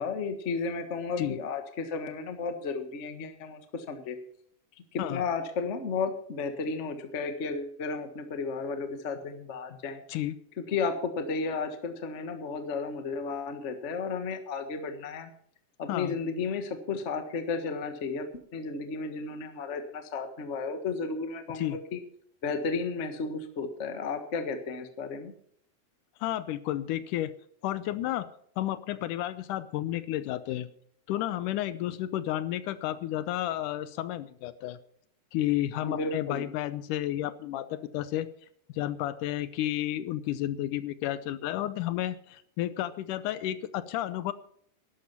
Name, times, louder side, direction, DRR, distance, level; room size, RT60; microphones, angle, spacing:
voice 1, 0.0-4.2 4.9-10.0 10.6-15.3 15.8-18.3 18.5-22.0 22.4-25.3 35.8-36.4, left 4 dB, 45° left, 7 dB, 0.9 m, -33 dB
voice 2, 26.2-27.3 27.6-28.3 28.6-30.7 31.1-34.8 35.3-38.3 38.8-44.3, left 13 dB, 80° left, 14 dB, 2.2 m, -31 dB
12.5 x 11.5 x 5.8 m, 0.64 s
omnidirectional pair, 3.7 m